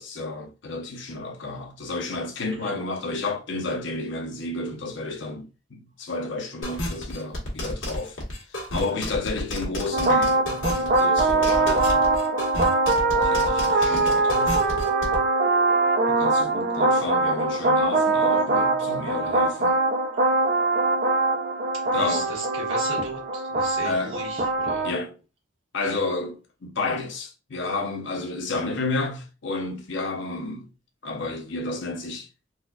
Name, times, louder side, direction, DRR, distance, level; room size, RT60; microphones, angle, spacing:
voice 1, 0.0-8.2 8.5-12.1 13.2-14.7 16.1-19.8 21.9-22.4 23.8-24.3 24.8-25.2 25.7-30.7 31.0-32.3, left 3 dB, 70° left, 0.8 m, -31 dB
sound 1, 6.6-15.2, left 1 dB, 90° left, 1.5 m, -31 dB
sound 2, 9.9-24.9, right 2 dB, 50° right, 0.5 m, -22 dB
voice 2, 21.8-22.2 22.5-24.9, right 2 dB, 70° right, 1.7 m, -36 dB
4.2 x 2.3 x 2.4 m
head